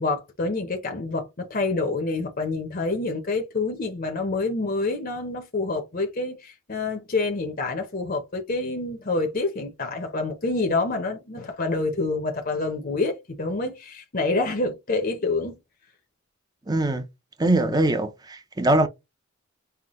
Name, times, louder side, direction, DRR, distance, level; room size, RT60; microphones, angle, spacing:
voice 1, 0.0-15.6 17.4-17.8, left 3 dB, 40° left, 0.8 m, -27 dB
voice 2, 16.7-17.1 17.4-18.9, right 2 dB, 20° right, 0.6 m, -22 dB
5.6 x 2.2 x 3.1 m
head